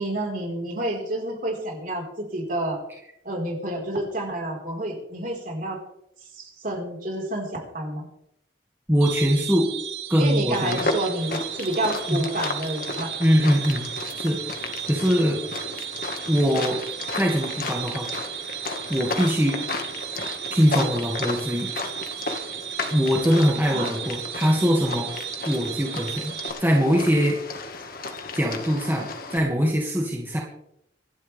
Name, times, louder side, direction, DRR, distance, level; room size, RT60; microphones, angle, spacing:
voice 1, 0.0-2.8 3.2-5.8 6.3-8.0 10.2-13.1 23.7-23.9, right 1 dB, 50° right, 0 dB, 4.7 m, -29 dB
voice 2, 8.9-9.7 10.1-10.9 12.1-12.2 13.2-13.8 14.2-14.4 14.9-15.4 16.3-16.8 17.1-18.1 18.9-19.6 20.5-21.7 22.9-25.1 25.5-26.3 26.6-27.4 28.3-30.4, equal, 10° right, -2 dB, 2.2 m, -22 dB
sound 1, 9.0-26.5, right 11 dB, 90° right, 6.8 m, -35 dB
sound 2, 10.5-29.4, left 3 dB, 55° left, 1.8 m, -34 dB
26.0 x 11.5 x 3.5 m, 0.79 s
head